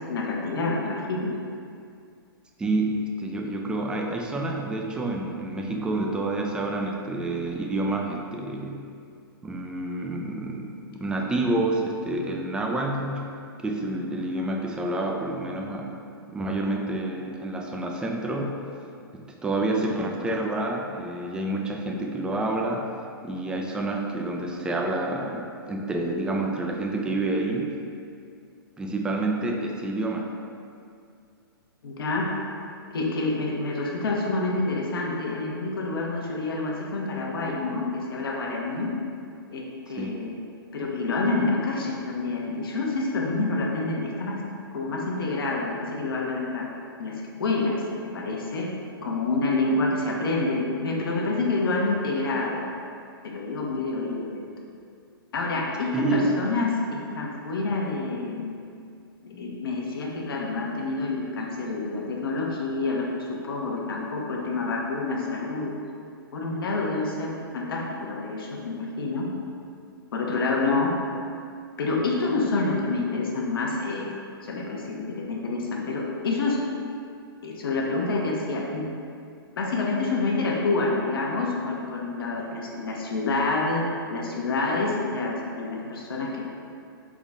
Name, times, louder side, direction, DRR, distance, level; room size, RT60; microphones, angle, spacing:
voice 1, 0.1-1.3 31.8-32.3 32.9-38.9 39.5-40.4 40.7-44.4 44.7-46.7 47.0-48.7 49.0-52.6 53.2-54.4 55.3-58.6 59.2-65.7 66.3-69.3 70.1-70.9 71.8-74.1 74.4-76.6 77.4-78.9 79.6-86.4, left 3 dB, 70° left, -1 dB, 0.9 m, -28 dB
voice 2, 2.6-8.8 9.4-13.3 13.6-16.0 16.3-18.6 19.1-22.9 23.2-27.7 28.8-30.3 40.0-40.1 55.9-56.3, right 2 dB, 5° right, 1 dB, 0.3 m, -28 dB
3.9 x 3.7 x 3.5 m, 2.4 s
hypercardioid pair, 125°, 13 cm